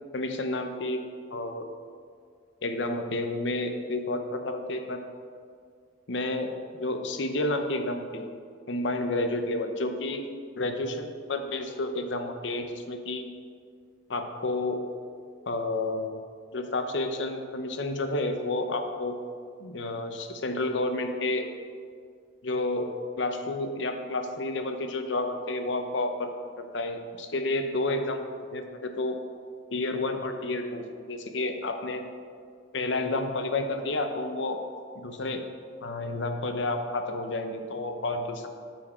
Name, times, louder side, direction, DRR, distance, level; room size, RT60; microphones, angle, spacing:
voice 1, 0.1-1.0 1.3-1.7 2.6-5.0 6.1-8.3 8.7-10.2 10.6-13.3 14.1-14.8 15.5-16.1 16.5-19.2 19.6-21.4 22.4-22.9 23.2-26.3 26.6-28.2 28.5-29.2 29.7-32.0 32.7-34.6 34.9-35.4 35.8-38.5, left 2 dB, 70° left, 6 dB, 0.7 m, -30 dB
13.0 x 4.7 x 4.3 m, 2.1 s
head